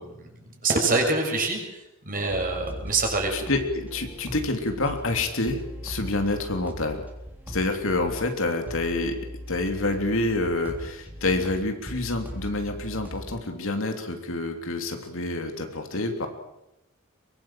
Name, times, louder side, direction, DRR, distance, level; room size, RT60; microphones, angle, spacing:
voice 1, 0.0-3.4, right 3 dB, 40° right, 2 dB, 6.7 m, -26 dB
sound 1, 2.3-13.4, equal, 10° right, 3.5 m, -39 dB
voice 2, 3.3-7.0 7.5-9.2 9.5-16.3, left 2 dB, 65° left, 5 dB, 3.3 m, -27 dB
23.5 x 22.0 x 7.6 m, 0.90 s
head